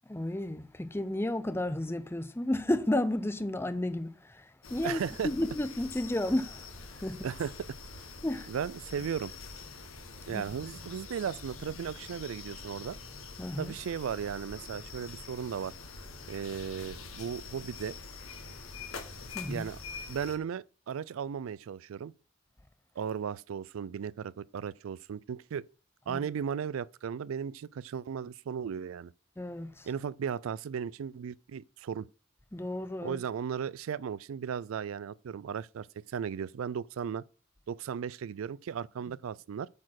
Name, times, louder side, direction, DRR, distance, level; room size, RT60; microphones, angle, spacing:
voice 1, 0.1-7.3 8.2-8.5 10.3-10.4 13.4-13.7 19.3-19.7 26.1-26.2 29.4-29.9 32.5-33.2, left 1 dB, 10° left, 0.6 m, -32 dB
sound 1, 4.6-20.4, left 4 dB, 90° left, 1.5 m, -45 dB
voice 2, 4.8-5.3 7.2-7.7 8.5-9.3 10.3-13.0 13.6-15.7 16.3-18.0 19.5-19.8 20.1-22.1 23.0-25.6 26.1-29.1 29.9-32.1 33.0-37.2 37.7-39.7, right 7 dB, 80° right, 0.3 m, -36 dB
8.5 x 4.2 x 6.3 m
head